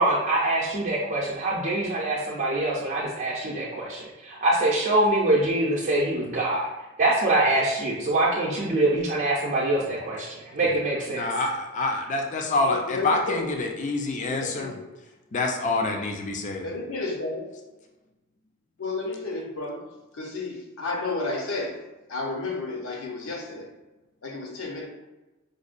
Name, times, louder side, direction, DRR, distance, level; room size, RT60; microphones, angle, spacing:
voice 1, 0.0-6.7 7.0-11.3, right 2 dB, 40° right, -5 dB, 0.5 m, -24 dB
voice 2, 11.1-14.8 15.3-16.7, left 2 dB, 35° left, 2 dB, 0.4 m, -27 dB
voice 3, 12.6-13.5 14.3-14.8 16.6-17.5 18.8-19.8 20.1-21.8 22.1-23.7 24.2-24.9, left 3 dB, 70° left, 1 dB, 0.7 m, -31 dB
5.0 x 2.2 x 2.5 m, 1.1 s
head